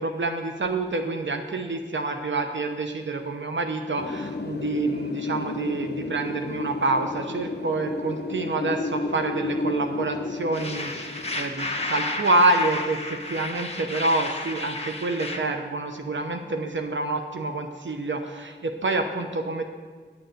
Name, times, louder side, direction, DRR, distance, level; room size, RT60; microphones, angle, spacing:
voice 1, 0.0-19.6, right 2 dB, 80° right, 5 dB, 0.8 m, -27 dB
Wind, 4.0-12.7, left 3 dB, 60° left, 0.7 m, -32 dB
sound 1, 10.5-15.4, left 2 dB, 35° left, 1.5 m, -32 dB
10.0 x 7.0 x 7.8 m, 1.5 s
wide cardioid pair, 45°, 19 cm